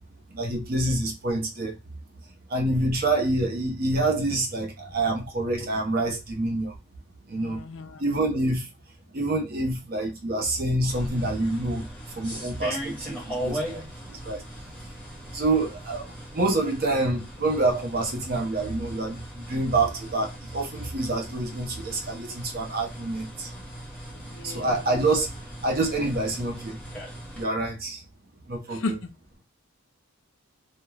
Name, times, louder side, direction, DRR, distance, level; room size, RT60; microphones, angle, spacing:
voice 1, 0.3-1.7 2.5-6.7 7.3-7.6 8.0-8.6 9.1-11.8 12.2-13.8 14.1-14.4 15.3-16.1 16.3-19.2 19.5-23.5 24.4-25.3 25.6-26.8 27.4-28.0 28.5-28.8, right 2 dB, 40° right, 0.6 m, -26 dB
voice 2, 7.4-8.0 24.1-24.7 28.7-29.1, left 2 dB, 55° left, 0.4 m, -34 dB
sound 1, 10.9-27.4, equal, 5° left, 0.7 m, -39 dB
2.3 x 2.1 x 3.1 m
head